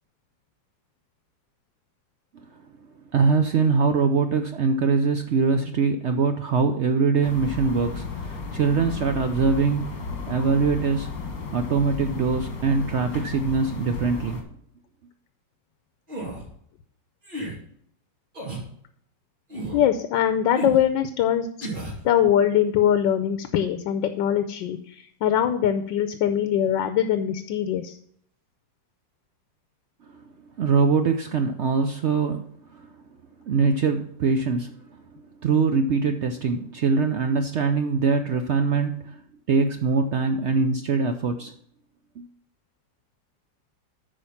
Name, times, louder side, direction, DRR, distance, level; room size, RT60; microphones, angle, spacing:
voice 1, 3.1-11.1 11.5-14.4 30.6-32.5 32.7-32.9 33.5-34.7 35.4-39.2 39.5-41.5 42.2-42.3, right 4 dB, 75° right, 6 dB, 0.6 m, -23 dB
sound 1, 7.2-14.4, left 4 dB, 75° left, 2.3 m, -34 dB
sound 2, 16.1-16.5 17.2-17.6 18.3-18.7 19.5-19.9 20.6-20.8 21.6-22.0, right 1 dB, 25° right, 2.7 m, -33 dB
voice 2, 19.7-21.7 22.0-28.0, left 9 dB, 90° left, 9 dB, 1.4 m, -22 dB
8.8 x 5.1 x 5.6 m, 0.65 s
omnidirectional pair, 1.9 m